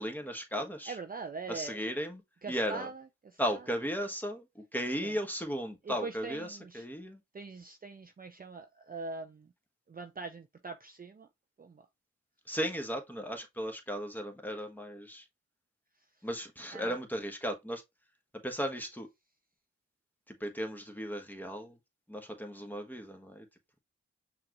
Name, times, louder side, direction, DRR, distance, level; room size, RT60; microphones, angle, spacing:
voice 1, 0.0-0.9 1.5-2.2 2.5-2.9 3.4-7.2 12.5-15.2 16.2-17.8 18.4-19.1 20.3-21.8 22.1-23.4, equal, 5° left, 1.2 m, -36 dB
voice 2, 0.9-1.8 2.4-3.7 5.0-5.2 5.8-6.9 7.3-9.5 9.9-11.3 11.6-11.9 16.7-17.0, right 4 dB, 30° right, 0.5 m, -43 dB
5.8 x 2.5 x 2.9 m
cardioid pair, 45°, 30 cm